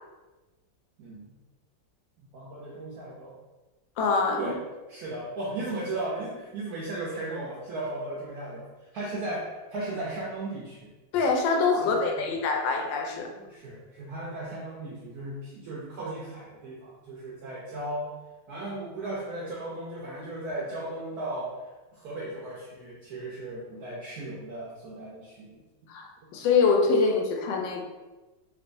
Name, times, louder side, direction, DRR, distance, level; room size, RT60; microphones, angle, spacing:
voice 1, 2.3-3.4 4.4-4.6 4.9-10.9 11.8-12.3 13.4-18.1 18.5-25.6, right 2 dB, 70° right, -4 dB, 1.0 m, -36 dB
voice 2, 4.0-4.5 11.1-13.3 25.9-27.8, left 4 dB, 85° left, 2 dB, 1.3 m, -24 dB
3.3 x 3.0 x 2.5 m, 1.2 s
omnidirectional pair, 2.0 m